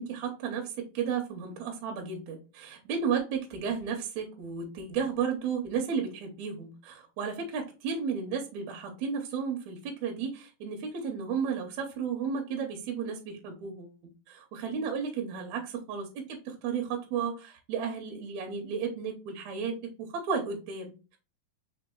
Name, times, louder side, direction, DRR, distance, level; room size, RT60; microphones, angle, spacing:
voice 1, 0.0-13.9 14.3-15.6 15.9-21.2, right 6 dB, 75° right, 2 dB, 1.7 m, -33 dB
5.1 x 3.2 x 2.2 m, 0.32 s
omnidirectional pair, 3.9 m